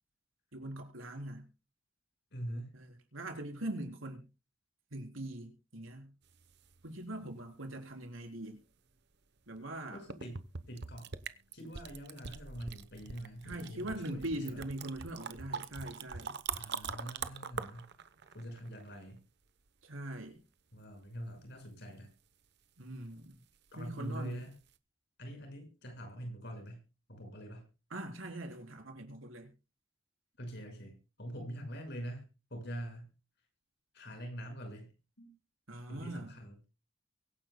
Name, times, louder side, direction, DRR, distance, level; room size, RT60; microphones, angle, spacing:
voice 1, 0.5-1.5 2.7-4.3 4.9-6.1 6.8-8.6 9.5-10.0 13.4-16.4 19.8-20.4 22.8-23.4 23.8-24.4 27.9-29.5 35.7-36.3, right 1 dB, 80° right, 4 dB, 3.9 m, -42 dB
voice 2, 2.3-2.7 7.7-7.8 9.9-10.4 10.7-11.1 11.5-14.6 16.5-17.9 18.3-19.2 20.7-22.1 23.7-24.5 25.2-27.7 30.4-33.1 33.9-35.3 35.9-36.5, right 1 dB, 55° left, 4 dB, 5.7 m, -44 dB
sound 1, 6.3-7.2 9.6-9.7 10.1-19.2 24.1-24.3 24.7-24.8, right 6 dB, 55° right, 0.9 m, -43 dB
23.5 x 10.0 x 2.2 m, 0.30 s
head